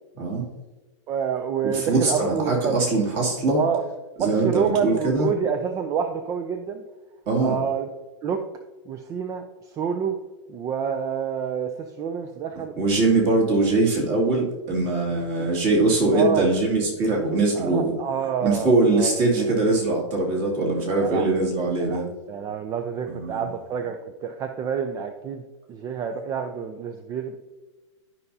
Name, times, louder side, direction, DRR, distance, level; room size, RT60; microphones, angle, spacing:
voice 1, 1.1-2.8 3.6-3.8 4.2-6.8 7.4-7.9 8.2-8.4 8.9-10.2 10.5-12.7 15.4-15.5 16.1-16.5 17.5-19.5 21.0-21.3 21.8-25.4 25.7-27.4, right 7 dB, 20° right, 6 dB, 0.4 m, -28 dB
voice 2, 1.6-3.6 4.2-5.3 7.3-7.6 12.8-17.9 18.4-22.1 23.1-23.4, right 2 dB, 35° right, -2 dB, 2.5 m, -22 dB
12.0 x 5.4 x 2.7 m, 1.2 s
hypercardioid pair, 140°, 16 cm